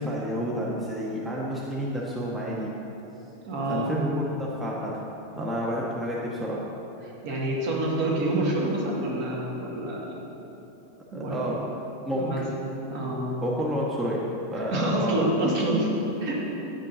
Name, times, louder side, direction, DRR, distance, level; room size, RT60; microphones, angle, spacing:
voice 1, 0.0-2.7 3.7-4.9 5.4-6.6 11.1-11.6 12.0-12.3 13.4-14.2 14.5-15.2, equal, 10° right, -5 dB, 0.9 m, -30 dB
voice 2, 3.5-3.9 7.0-10.2 11.1-11.5 12.2-12.4 12.9-13.3 14.6-15.9 16.2-16.5, right 1 dB, 55° right, -3 dB, 2.0 m, -27 dB
8.8 x 5.2 x 5.5 m, 3.0 s
supercardioid pair, 150°, 0 cm